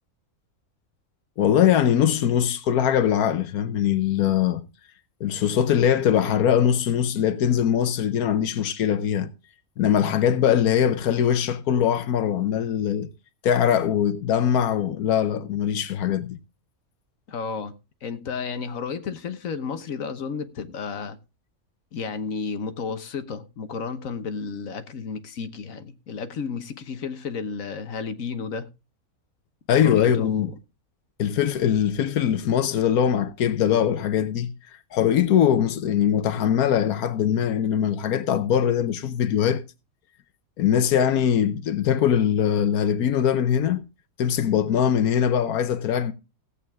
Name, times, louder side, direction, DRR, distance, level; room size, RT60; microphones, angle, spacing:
voice 1, 1.4-4.6 5.2-9.3 9.8-13.1 13.4-16.4 29.7-30.5 31.2-34.5 34.9-39.6 40.6-43.8 44.2-46.1, left 9 dB, 85° left, 1.3 m, -22 dB
voice 2, 17.3-17.7 18.0-21.2 21.9-28.7 29.7-30.5, left 5 dB, 65° left, 1.4 m, -32 dB
16.5 x 8.4 x 3.6 m
omnidirectional pair, 1.5 m